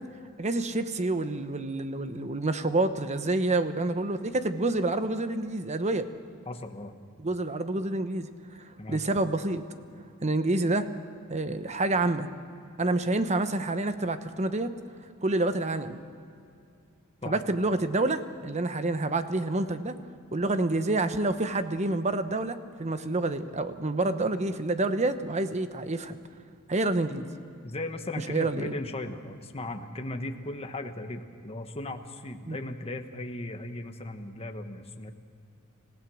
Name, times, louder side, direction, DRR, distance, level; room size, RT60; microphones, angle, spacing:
voice 1, 0.4-6.1 7.2-8.3 8.7-9.6 10.2-10.9 11.3-12.3 12.8-14.7 15.2-16.0 17.2-19.9 20.3-26.2 26.7-27.3 28.3-28.7 32.5-32.6, right 2 dB, 30° right, 10 dB, 1.0 m, -28 dB
voice 2, 6.5-6.9 8.8-9.0 17.2-17.3 27.6-35.1, left 2 dB, 25° left, 6 dB, 1.2 m, -37 dB
26.5 x 16.0 x 6.3 m, 2.5 s
head